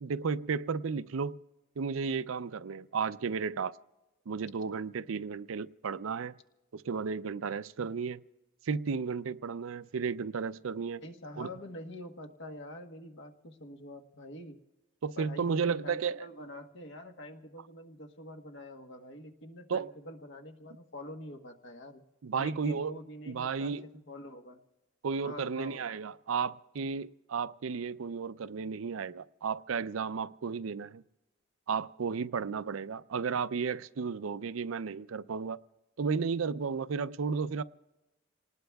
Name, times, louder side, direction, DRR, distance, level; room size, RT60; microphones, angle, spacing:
voice 1, 0.0-1.4 1.8-3.7 4.3-6.3 6.7-8.2 8.6-11.0 11.4-11.5 15.0-16.3 19.7-19.9 22.2-22.9 23.3-23.9 25.0-31.0 31.7-35.6 36.0-37.6, right 5 dB, 75° right, 0.5 m, -33 dB
voice 2, 11.0-14.6 15.2-22.0 22.4-24.6 25.2-25.9, left 1 dB, 65° left, 1.2 m, -46 dB
28.0 x 19.5 x 2.3 m
head